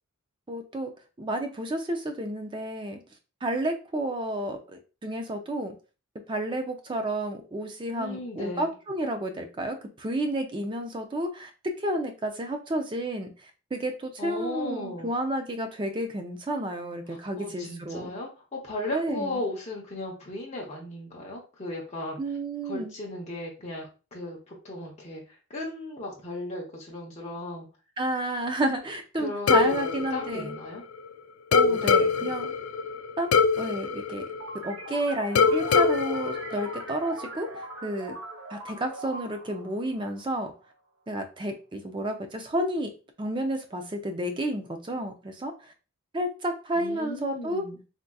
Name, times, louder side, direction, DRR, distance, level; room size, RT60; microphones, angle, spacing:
voice 1, 0.5-0.9 1.2-3.0 3.4-5.8 6.3-11.5 11.8-18.1 18.9-19.4 22.2-22.9 28.0-30.6 31.5-32.5 33.2-33.3 33.6-34.2 34.6-38.2 38.5-40.5 41.1-42.9 43.2-45.7 46.1-47.7, right 1 dB, 20° right, 5 dB, 0.4 m, -31 dB
voice 2, 7.9-8.7 14.2-15.1 17.1-22.2 22.6-23.9 24.1-25.2 25.5-27.7 29.2-30.8 31.7-31.9 32.2-32.3 46.7-47.8, left 2 dB, 30° left, -3 dB, 0.7 m, -36 dB
sound 1, 29.5-31.1 31.5-34.9 35.4-37.3, left 5 dB, 70° left, 0.3 m, -24 dB
sound 2, 34.4-40.6, right 3 dB, 70° right, 0.7 m, -41 dB
3.5 x 2.7 x 2.2 m, 0.33 s
head